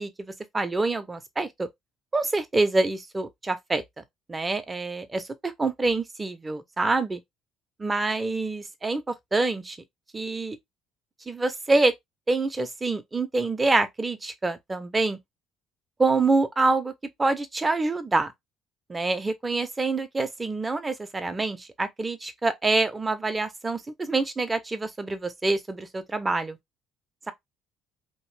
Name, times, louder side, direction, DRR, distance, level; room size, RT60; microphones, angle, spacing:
voice 1, 0.0-1.7 2.1-4.0 4.3-7.2 7.8-9.8 10.1-10.6 11.3-11.9 12.3-15.2 16.0-16.9 17.2-18.3 18.9-26.6, right 3 dB, 25° right, 0.8 m, -26 dB
3.1 x 2.5 x 3.3 m
hypercardioid pair, 65°, 0 cm